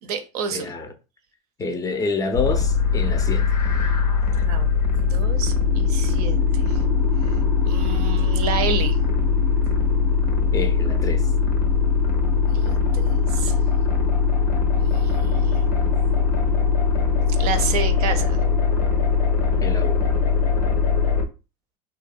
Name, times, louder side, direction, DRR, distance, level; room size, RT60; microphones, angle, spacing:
voice 1, 0.0-0.7 4.5-6.8 7.7-9.0 12.5-13.5 14.8-15.8 17.4-18.4, right 5 dB, 70° right, 0.5 m, -30 dB
voice 2, 0.5-0.9 1.6-3.5 10.5-11.3 19.6-20.1, left 3 dB, 20° left, 0.4 m, -27 dB
sound 1, 2.3-21.3, left 5 dB, 85° left, 0.5 m, -20 dB
2.7 x 2.0 x 2.3 m
hypercardioid pair, 95°, 20 cm